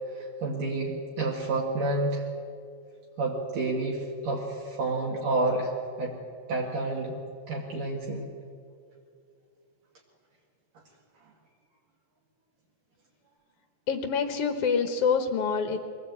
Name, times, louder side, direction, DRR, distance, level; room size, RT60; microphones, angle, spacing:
voice 1, 0.1-2.3 3.2-6.2 6.5-7.1 7.5-8.3, right 2 dB, 65° right, -3 dB, 3.6 m, -29 dB
voice 2, 13.9-15.8, left 6 dB, 65° left, 7 dB, 1.5 m, -26 dB
22.5 x 17.0 x 8.6 m, 2.3 s
omnidirectional pair, 4.2 m